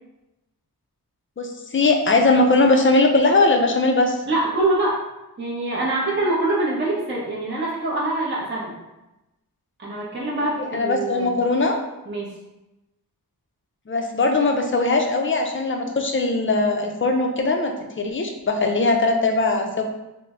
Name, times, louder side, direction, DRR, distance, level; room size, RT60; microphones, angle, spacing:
voice 1, 1.4-4.2 10.7-11.8 13.9-19.8, left 2 dB, 35° left, 3 dB, 0.4 m, -20 dB
voice 2, 4.3-5.0 5.4-8.7 9.8-11.4 12.1-12.4, right 2 dB, 30° right, -6 dB, 0.7 m, -24 dB
3.2 x 2.0 x 3.5 m, 0.97 s
wide cardioid pair, 85°, 37 cm